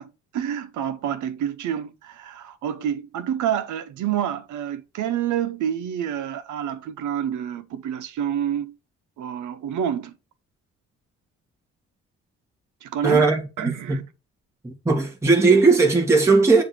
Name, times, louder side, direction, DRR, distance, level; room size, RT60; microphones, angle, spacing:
voice 1, 0.0-8.7 9.2-10.2 12.8-13.3 13.6-14.0, right 9 dB, 75° right, 0.8 m, -28 dB
voice 2, 13.0-14.0 14.6-16.6, right 3 dB, 10° right, 1.5 m, -18 dB
7.7 x 2.8 x 6.0 m
cardioid pair, 90°, 30 cm